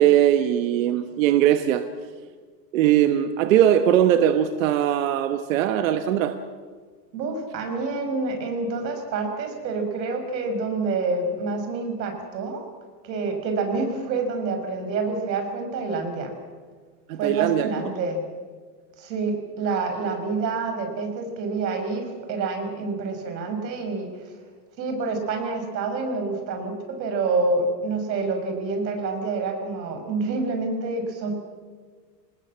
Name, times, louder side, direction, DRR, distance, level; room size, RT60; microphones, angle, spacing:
voice 1, 0.0-1.8 2.7-6.3 17.1-17.7, right 11 dB, 50° right, 9 dB, 1.2 m, -20 dB
voice 2, 7.1-12.6 13.0-16.3 17.2-18.2 19.0-24.3 24.8-31.3, right 3 dB, 85° right, 5 dB, 6.1 m, -27 dB
26.0 x 19.5 x 7.6 m, 1.5 s
supercardioid pair, 180°, 50 cm